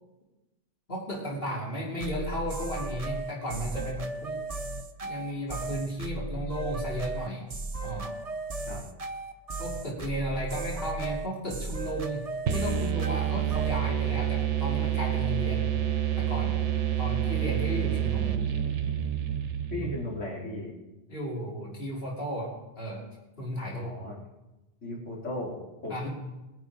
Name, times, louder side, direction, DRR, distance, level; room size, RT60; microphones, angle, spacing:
voice 1, 0.9-4.4 5.0-7.4 7.8-8.2 9.6-12.2 12.5-15.7 16.2-16.7 17.0-18.4 19.7-19.9 21.1-23.1 23.4-24.0 25.9-26.1, equal, 50° left, -4 dB, 3.3 m, -34 dB
sound 1, 2.0-13.9, right 3 dB, 35° right, 1.0 m, -35 dB
sound 2, 12.5-20.1, right 10 dB, 75° right, 1.2 m, -28 dB
voice 2, 19.7-20.7 23.7-24.2 24.8-26.0, left 1 dB, 90° left, -5 dB, 4.2 m, -36 dB
21.5 x 10.0 x 4.9 m, 1.0 s
omnidirectional pair, 1.2 m